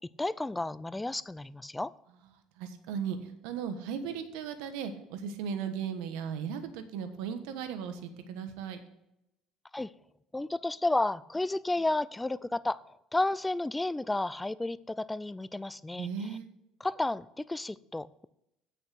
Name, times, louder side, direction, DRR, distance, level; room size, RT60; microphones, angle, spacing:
voice 1, 0.2-1.9 9.7-9.9 10.3-12.8 13.1-16.3 16.8-18.3, left 2 dB, 10° left, 19 dB, 0.4 m, -32 dB
voice 2, 2.6-8.8 15.9-16.5, right 7 dB, 80° right, 9 dB, 1.2 m, -37 dB
8.1 x 6.6 x 6.4 m, 0.85 s
supercardioid pair, 80°, 0 cm